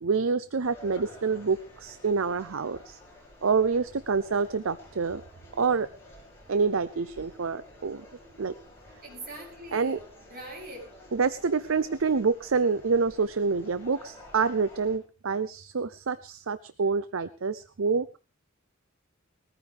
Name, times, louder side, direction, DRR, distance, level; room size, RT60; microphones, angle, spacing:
voice 1, 0.0-3.0 3.4-5.2 5.6-5.9 6.5-8.0 8.4-8.5 9.7-10.0 11.1-18.2, right 5 dB, 80° right, 14 dB, 0.6 m, -27 dB
sound 1, 0.6-15.0, left 1 dB, 15° left, 6.9 m, -51 dB
voice 2, 9.0-10.0 10.3-10.8, right 1 dB, 50° right, -2 dB, 7.6 m, -42 dB
20.5 x 14.5 x 3.4 m, 0.33 s
head